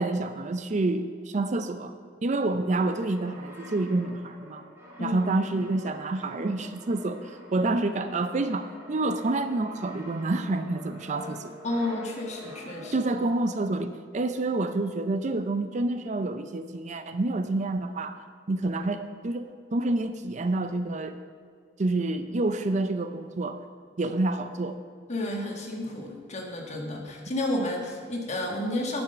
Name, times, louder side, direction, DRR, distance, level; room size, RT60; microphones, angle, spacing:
voice 1, 0.0-1.9 2.2-4.6 5.0-11.6 12.9-18.2 18.5-21.2 21.8-23.6 24.0-24.8, right 2 dB, 40° right, 9 dB, 0.5 m, -28 dB
Brass instrument, 2.5-13.3, equal, 15° right, 2.5 m, -46 dB
voice 2, 5.0-5.3 11.6-12.9 25.1-29.0, left 1 dB, 40° left, 1 dB, 1.5 m, -31 dB
10.5 x 6.1 x 6.7 m, 2.1 s
head